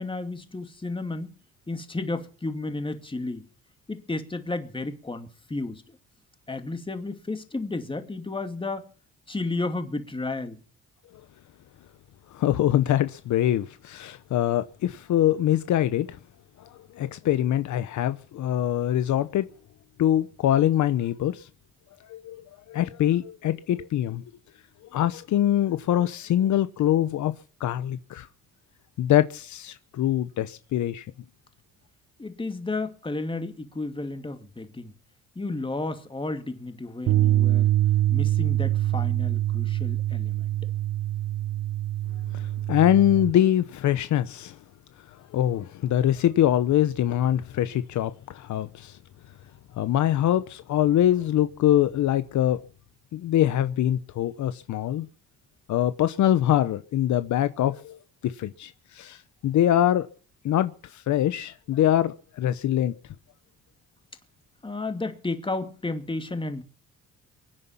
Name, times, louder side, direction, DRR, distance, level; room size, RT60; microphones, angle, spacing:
voice 1, 0.0-1.4 1.7-3.5 3.9-6.0 6.5-8.9 9.3-10.6 32.2-34.9 35.4-37.7 38.1-40.5 64.6-66.6, left 2 dB, 15° left, 2.5 m, -32 dB
voice 2, 12.3-16.2 16.9-19.5 20.0-21.5 22.1-22.4 22.7-24.2 24.9-27.3 27.6-28.3 29.0-31.0 42.3-44.6 45.3-49.0 49.8-52.6 53.1-55.1 55.7-58.0 58.2-60.1 60.4-62.9, left 12 dB, 75° left, 1.0 m, -24 dB
Bass guitar, 37.1-43.3, right 14 dB, 70° right, 1.0 m, -24 dB
23.0 x 9.9 x 5.9 m
cardioid pair, 90°, 30 cm